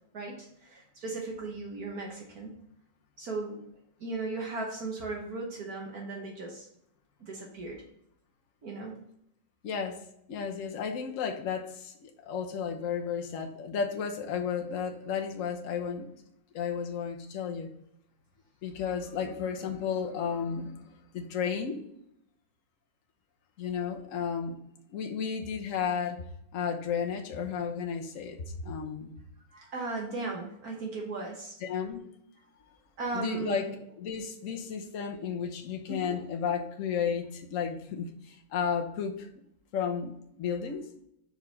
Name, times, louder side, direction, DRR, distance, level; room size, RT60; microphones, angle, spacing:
voice 1, 0.1-2.5 3.2-3.6 4.0-6.7 7.2-7.8 8.6-9.0 29.5-31.6 33.0-33.7 35.9-36.2, right 3 dB, 55° right, 0 dB, 1.6 m, -37 dB
voice 2, 9.6-10.0 10.3-16.1 16.5-17.7 18.6-20.8 21.1-21.8 23.6-24.6 24.9-26.2 26.5-29.1 31.6-32.0 33.1-33.7 34.0-39.3 39.7-40.9, left 6 dB, 55° left, 3 dB, 1.1 m, -33 dB
4.8 x 4.6 x 5.4 m, 0.74 s
omnidirectional pair, 2.0 m